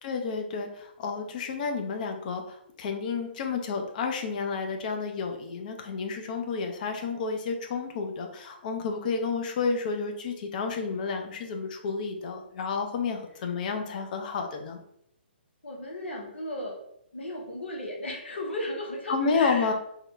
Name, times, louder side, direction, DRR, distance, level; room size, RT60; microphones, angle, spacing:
voice 1, 0.0-14.8 19.1-19.7, left 5 dB, 50° left, 4 dB, 0.6 m, -30 dB
voice 2, 15.6-16.8 17.1-19.7, left 1 dB, 90° left, -1 dB, 1.0 m, -35 dB
3.7 x 2.3 x 3.1 m, 0.73 s
hypercardioid pair, 140°, 6 cm